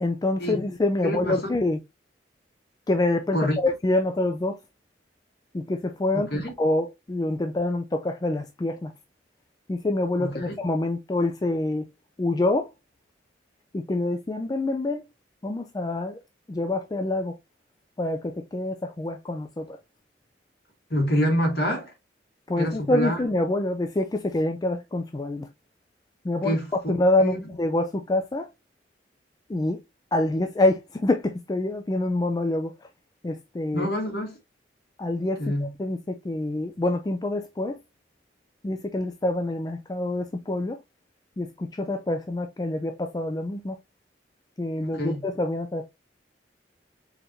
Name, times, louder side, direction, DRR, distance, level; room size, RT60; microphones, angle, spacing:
voice 1, 0.0-1.8 2.9-4.6 5.5-8.9 9.7-11.9 12.2-12.7 13.7-15.1 15.4-16.2 16.5-17.4 18.0-19.8 22.5-25.5 26.2-28.5 29.5-29.8 30.1-32.7 33.2-33.9 35.0-37.8 38.6-40.8 41.4-43.8 44.6-45.9, left 2 dB, 20° left, 0.3 m, -26 dB
voice 2, 1.0-1.5 3.3-3.6 6.3-6.5 10.2-10.5 20.9-21.9 22.6-23.2 26.4-26.7 27.2-27.4 33.7-34.4 35.4-35.7 44.9-45.2, equal, 55° left, 2.0 m, -26 dB
4.4 x 3.9 x 2.7 m
head